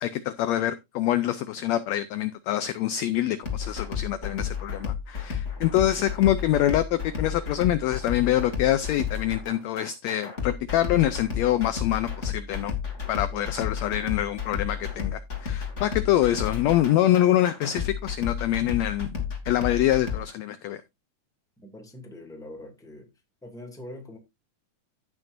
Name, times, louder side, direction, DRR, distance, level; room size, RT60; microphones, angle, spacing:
voice 1, 0.0-12.7 13.1-20.8, left 12 dB, 80° left, 1.6 m, -25 dB
sound 1, 3.4-20.2, left 7 dB, 25° left, 2.1 m, -32 dB
voice 2, 21.6-23.1 23.4-24.2, left 1 dB, ahead, 1.6 m, -43 dB
15.0 x 6.0 x 2.6 m
omnidirectional pair, 3.6 m